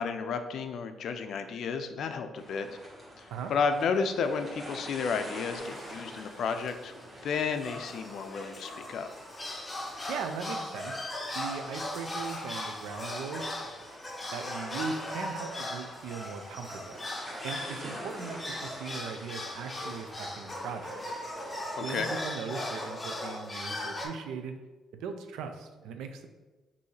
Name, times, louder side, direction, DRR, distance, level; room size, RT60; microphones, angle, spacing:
voice 1, 0.0-2.7 3.2-6.9 7.2-9.1 21.7-22.1, left 5 dB, 70° left, 8 dB, 0.4 m, -32 dB
sound 1, 2.4-22.0, equal, 25° right, 1.3 m, -47 dB
sound 2, 5.6-6.4 6.7-6.8 7.0-7.2 7.6-24.1, left 1 dB, 20° left, 0.9 m, -38 dB
voice 2, 10.1-13.5 14.3-17.0 17.4-21.0 21.8-24.6 24.9-26.3, right 5 dB, 90° right, 7 dB, 0.4 m, -39 dB
5.3 x 2.7 x 3.2 m, 1.2 s
cardioid pair, 90°, 0 cm